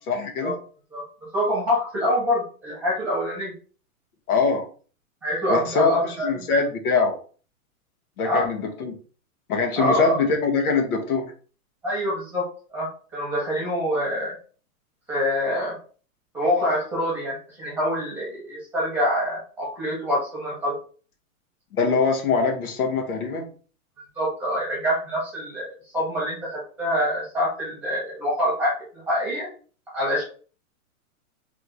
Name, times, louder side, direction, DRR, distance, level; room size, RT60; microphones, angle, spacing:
voice 1, 0.1-0.5 4.3-4.6 5.5-7.2 8.2-8.9 9.5-11.2 21.7-23.5, left 4 dB, 90° left, 2 dB, 1.6 m, -23 dB
voice 2, 1.3-3.5 5.2-6.6 8.2-8.5 9.8-10.2 11.8-14.3 15.1-15.8 16.3-20.7 24.1-29.5 29.9-30.2, equal, 5° right, -5 dB, 1.4 m, -26 dB
3.4 x 3.2 x 4.0 m, 0.39 s
supercardioid pair, 175°, 43 cm